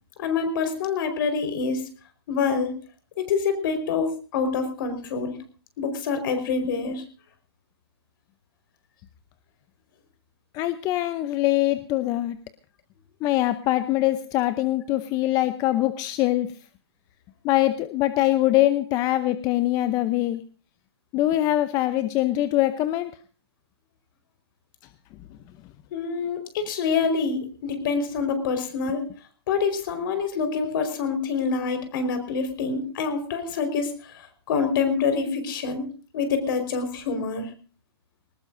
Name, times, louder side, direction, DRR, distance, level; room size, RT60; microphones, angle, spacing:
voice 1, 0.2-1.9 2.3-2.8 3.2-5.4 5.8-7.0 25.9-29.0 29.5-35.9 36.1-37.5, left 5 dB, 50° left, 8 dB, 4.8 m, -26 dB
voice 2, 10.5-12.4 13.2-16.5 17.4-20.4 21.1-23.1, left 15 dB, 25° left, 12 dB, 0.7 m, -23 dB
21.5 x 19.0 x 2.7 m, 0.39 s
hypercardioid pair, 145°, 14 cm